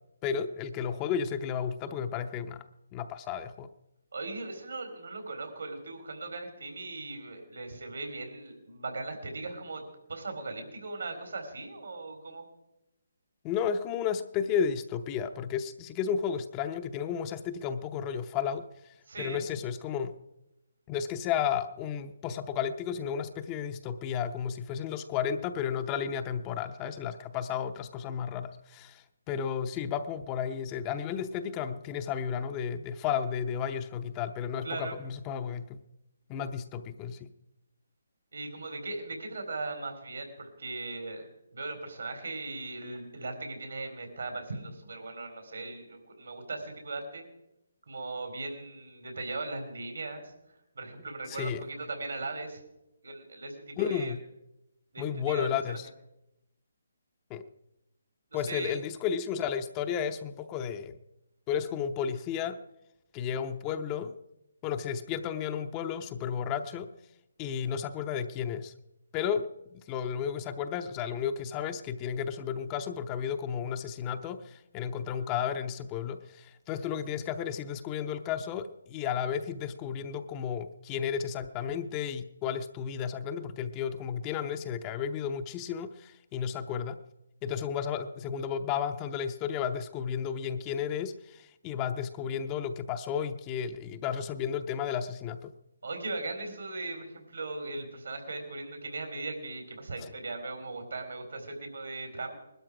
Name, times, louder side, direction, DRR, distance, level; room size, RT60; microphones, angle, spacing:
voice 1, 0.2-2.6 2.9-3.7 13.4-18.7 19.2-20.1 20.9-35.8 36.3-37.3 51.3-51.6 53.8-54.2 55.0-55.9 57.3-57.5 58.3-61.0 61.5-62.6 63.1-64.1 64.6-66.9 67.4-68.7 69.1-87.0 87.4-95.5, left 8 dB, 20° left, 9 dB, 0.7 m, -33 dB
voice 2, 4.1-9.8 10.1-12.4 19.1-19.4 34.6-35.0 38.3-41.3 41.5-47.2 47.9-50.2 50.7-52.6 53.0-54.1 54.9-55.8 58.3-58.8 95.8-102.3, right 3 dB, 80° right, 5 dB, 4.0 m, -38 dB
20.5 x 12.5 x 4.9 m, 0.90 s
hypercardioid pair, 155°, 0 cm